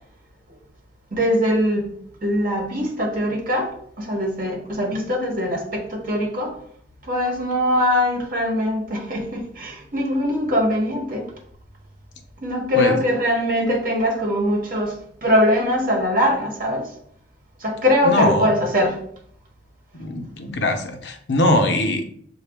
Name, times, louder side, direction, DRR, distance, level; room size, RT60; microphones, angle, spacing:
voice 1, 1.1-1.9 2.2-6.6 7.0-11.3 12.4-16.9 17.6-19.0, equal, 50° right, 0 dB, 1.1 m, -22 dB
voice 2, 18.0-18.6 19.9-22.0, left 1 dB, 85° left, 5 dB, 0.7 m, -21 dB
6.4 x 2.3 x 3.5 m, 0.64 s
head